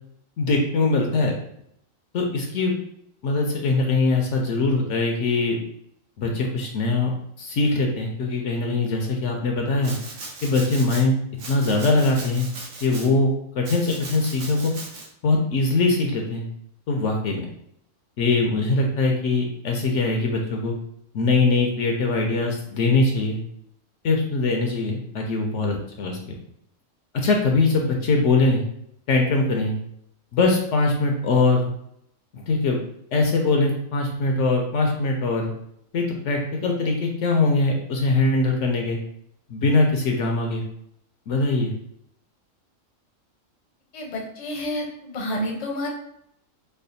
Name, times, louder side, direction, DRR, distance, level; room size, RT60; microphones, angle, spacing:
voice 1, 0.4-1.3 2.1-2.7 3.2-5.6 6.2-7.1 7.4-9.9 10.4-11.1 11.5-12.5 12.8-14.7 15.2-16.4 16.9-17.5 18.2-20.7 21.1-23.4 24.0-26.2 27.1-28.6 29.1-29.7 30.3-31.7 32.3-32.8 33.1-35.5 35.9-39.0 39.5-40.6 41.3-41.7, left 3 dB, 70° left, 1 dB, 0.9 m, -22 dB
Domestic sounds home sounds, 9.8-11.0 11.4-13.1 13.6-15.1, right 3 dB, 70° right, 1.1 m, -38 dB
voice 2, 43.9-45.9, left 1 dB, 40° left, 0 dB, 0.6 m, -29 dB
3.3 x 2.0 x 3.9 m, 0.73 s
omnidirectional pair, 1.4 m